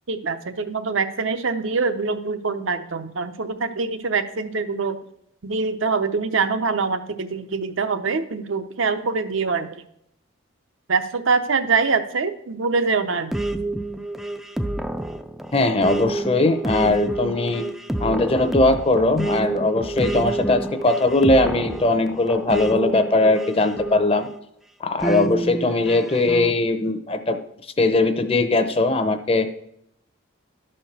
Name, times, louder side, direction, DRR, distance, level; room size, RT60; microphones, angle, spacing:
voice 1, 0.1-5.0 5.4-9.7 10.9-13.3, right 4 dB, 80° right, 9 dB, 0.7 m, -24 dB
sound 1, 13.3-24.4 25.0-26.5, right 2 dB, ahead, 0.3 m, -28 dB
voice 2, 15.5-17.7 18.0-24.3 24.8-27.4 27.8-29.5, left 2 dB, 30° left, 9 dB, 0.7 m, -20 dB
11.5 x 4.4 x 6.6 m, 0.73 s
head